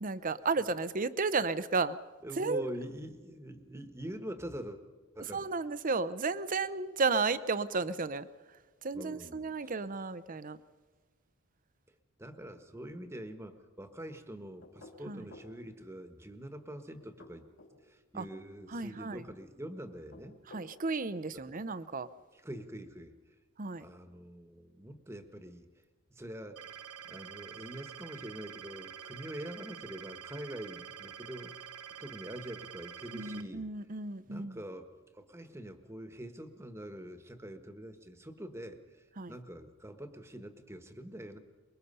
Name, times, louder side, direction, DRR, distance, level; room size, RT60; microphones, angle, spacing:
voice 1, 0.0-2.0 2.4-2.6 5.3-8.3 8.8-10.6 15.1-15.2 18.1-18.2 18.7-19.2 20.5-22.1 23.6-23.8 33.1-34.6 39.2-39.3, right 4 dB, 35° right, 15 dB, 0.7 m, -33 dB
voice 2, 2.2-4.8 5.1-5.4 8.9-9.7 12.2-17.5 17.8-20.4 21.3-21.5 22.3-23.2 23.8-25.7 26.1-26.6 27.0-31.7 32.0-33.7 34.2-41.4, right 1 dB, 10° right, 8 dB, 1.3 m, -44 dB
sound 1, 14.6-15.6 17.0-17.8 19.9-20.7, left 2 dB, 60° left, 3.4 m, -53 dB
sound 2, 26.6-33.4, right 8 dB, 90° right, 1.0 m, -47 dB
24.0 x 22.0 x 5.5 m, 1.4 s
head